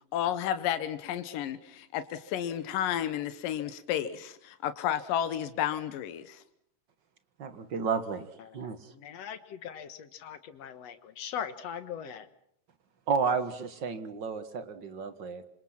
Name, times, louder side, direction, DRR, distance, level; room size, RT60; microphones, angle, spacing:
voice 1, 0.1-6.4, left 10 dB, 85° left, 11 dB, 2.9 m, -32 dB
voice 2, 7.4-8.3 8.5-8.9 13.1-15.4, right 5 dB, 45° right, 10 dB, 1.8 m, -32 dB
voice 3, 8.5-12.3, left 8 dB, 55° left, 11 dB, 2.3 m, -40 dB
27.5 x 26.0 x 5.9 m, 0.70 s
omnidirectional pair, 3.8 m